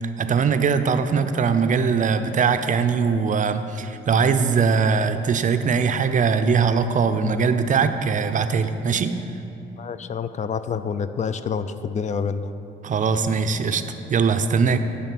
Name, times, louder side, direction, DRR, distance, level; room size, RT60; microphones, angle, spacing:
voice 1, 0.2-9.1 12.8-13.8 14.1-14.8, right 5 dB, 40° right, 9 dB, 0.5 m, -21 dB
voice 2, 9.8-12.5, left 6 dB, 35° left, 12 dB, 0.4 m, -27 dB
10.5 x 3.7 x 5.9 m, 2.9 s
cardioid pair, 90°, 20 cm